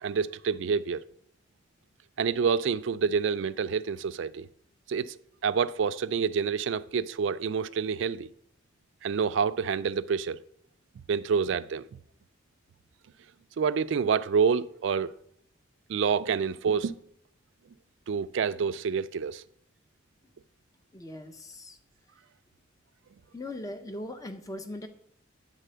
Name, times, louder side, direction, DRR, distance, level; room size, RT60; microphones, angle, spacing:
voice 1, 0.0-1.0 2.2-4.5 4.9-8.3 9.0-10.4 11.1-11.8 13.6-15.1 15.9-16.9 18.1-19.4, right 6 dB, 65° right, 0.3 m, -27 dB
voice 2, 20.9-21.8 23.3-24.9, left 1 dB, 15° left, 0.5 m, -39 dB
9.1 x 4.1 x 6.7 m
head